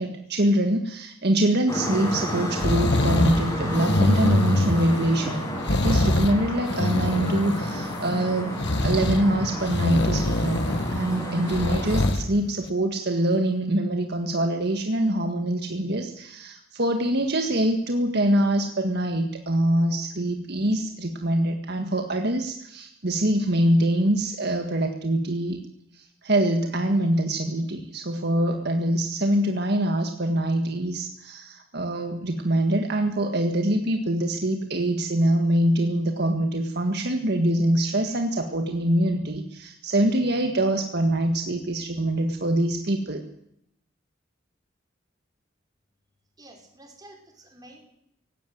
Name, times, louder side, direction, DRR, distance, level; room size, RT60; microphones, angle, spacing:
voice 1, 0.0-5.4 5.7-25.6 25.9-43.2, right 1 dB, 60° right, 5 dB, 1.8 m, -24 dB
sound 1, 1.7-12.1, equal, 15° left, 6.4 m, -31 dB
sound 2, 2.6-3.4 3.7-5.1 5.6-6.4 6.6-8.0 8.6-9.2 9.7-11.0 11.5-12.2 12.7-12.8, left 1 dB, 65° left, 1.5 m, -24 dB
voice 2, 46.4-47.9, right 1 dB, 20° right, 1 dB, 5.4 m, -49 dB
18.5 x 15.5 x 9.4 m, 0.75 s
head